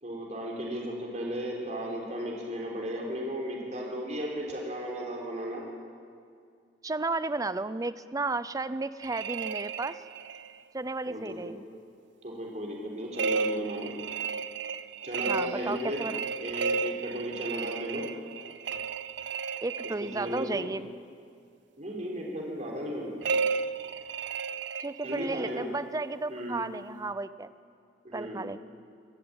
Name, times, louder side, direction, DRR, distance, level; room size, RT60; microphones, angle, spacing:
voice 1, 0.0-5.7 11.1-11.5 12.2-13.9 15.0-16.1 16.4-18.1 20.0-20.7 21.8-23.2 25.0-25.7 26.3-26.6 28.0-28.5, equal, 45° right, -2 dB, 3.8 m, -35 dB
voice 2, 6.8-10.0 10.7-11.6 15.3-16.2 19.6-20.9 24.8-27.5 28.1-28.6, right 3 dB, 20° right, 15 dB, 0.5 m, -33 dB
sound 1, 9.0-10.6 13.1-20.5 23.2-25.5, right 5 dB, 90° right, 0.6 m, -33 dB
24.5 x 13.5 x 8.9 m, 2.2 s
head